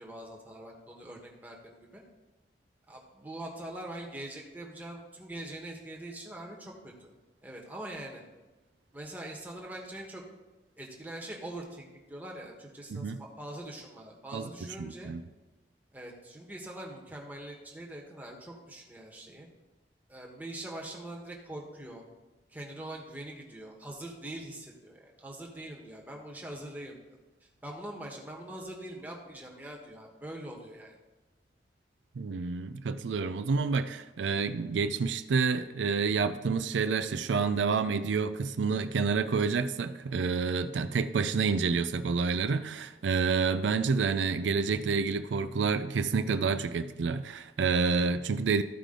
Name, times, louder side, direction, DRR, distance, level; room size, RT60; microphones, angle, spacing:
voice 1, 0.0-2.0 2.9-7.1 7.4-8.2 8.9-10.2 10.8-15.1 15.9-19.5 20.1-22.0 22.5-27.0 27.6-30.9, right 1 dB, 10° right, -1 dB, 1.3 m, -43 dB
voice 2, 14.8-15.2 32.2-48.6, right 5 dB, 90° right, 10 dB, 0.4 m, -28 dB
13.5 x 4.9 x 3.8 m, 1.2 s
head